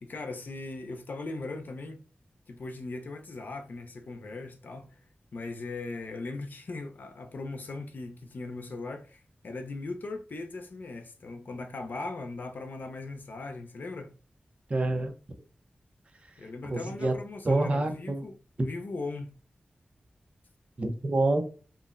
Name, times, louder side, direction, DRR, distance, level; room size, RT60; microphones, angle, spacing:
voice 1, 0.0-2.0 2.5-5.0 5.3-14.2 16.4-19.3, left 3 dB, 70° left, 0.5 m, -39 dB
voice 2, 14.7-15.1 16.2-16.4 16.7-17.1 17.4-18.2 18.6-18.7 20.8-21.4, right 2 dB, 40° right, 0.6 m, -27 dB
3.7 x 2.1 x 2.4 m
wide cardioid pair, 115°, 3 cm